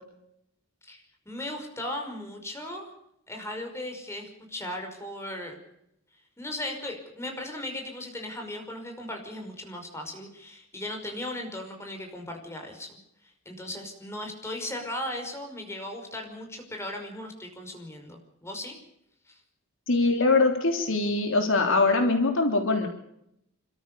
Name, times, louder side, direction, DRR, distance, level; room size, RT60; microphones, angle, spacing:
voice 1, 0.8-2.9 3.3-5.6 6.4-13.0 13.5-18.8 19.3-19.4, left 1 dB, 15° left, 3 dB, 5.6 m, -37 dB
voice 2, 19.9-22.9, left 3 dB, 65° left, 4 dB, 3.4 m, -23 dB
29.5 x 14.0 x 6.9 m, 0.78 s
head